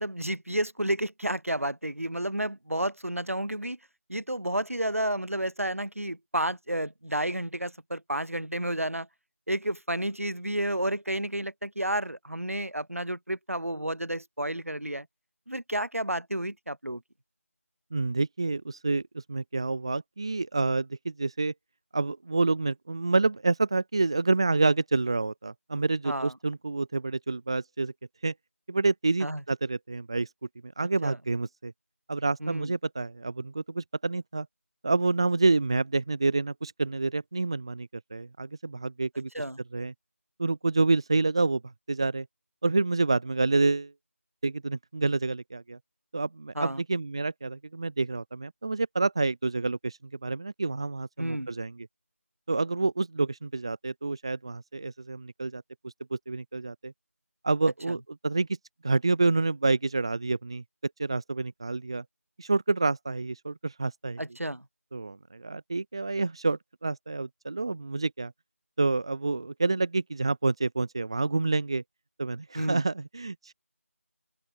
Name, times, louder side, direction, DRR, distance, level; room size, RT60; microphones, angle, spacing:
voice 1, 0.0-3.8 4.1-9.1 9.5-15.1 15.5-17.0 26.0-26.3 29.2-29.4 30.8-31.2 32.4-32.7 39.3-39.6 46.6-46.8 51.2-51.5 64.2-64.6 72.5-72.8, right 1 dB, 70° right, 4.1 m, -31 dB
voice 2, 17.9-21.5 21.9-27.9 28.2-28.3 28.7-30.3 30.6-31.7 32.1-34.5 34.8-39.3 39.7-39.9 40.4-41.6 41.9-42.3 42.6-43.9 44.4-45.8 46.1-51.9 52.5-56.9 57.4-58.5 58.8-60.6 61.0-62.0 62.4-64.2 64.9-68.3 68.8-71.8 72.2-73.5, right 3 dB, 20° right, 0.9 m, -28 dB
open air
figure-of-eight pair, 170°, 8 cm